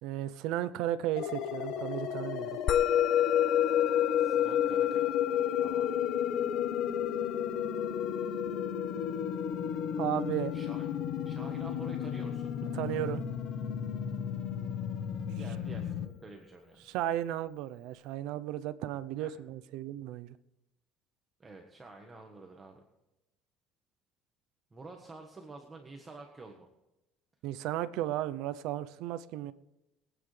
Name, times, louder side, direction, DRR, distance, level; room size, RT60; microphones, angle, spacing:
voice 1, 0.0-2.5 10.0-10.5 12.7-13.2 16.8-20.4 27.4-29.5, right 12 dB, 75° right, 0.6 m, -34 dB
sound 1, 1.2-16.1, left 7 dB, 65° left, 1.2 m, -36 dB
Musical instrument, 2.7-13.3, left 10 dB, 45° left, 0.5 m, -30 dB
voice 2, 4.2-5.2 5.6-5.9 10.5-10.9 11.2-12.5 15.3-16.9 19.2-19.3 21.4-22.8 24.7-26.7, right 3 dB, 20° right, 1.3 m, -49 dB
23.5 x 9.0 x 3.3 m
cardioid pair, 135°, 0 cm